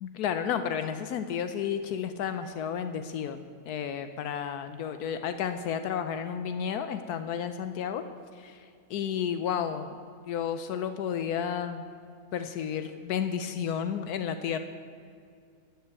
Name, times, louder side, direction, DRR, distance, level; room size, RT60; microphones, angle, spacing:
voice 1, 0.0-8.0 8.4-8.6 8.9-10.0 10.3-11.8 12.3-14.6, left 8 dB, 80° left, 9 dB, 1.2 m, -32 dB
12.5 x 7.9 x 8.1 m, 2.3 s
omnidirectional pair, 1.6 m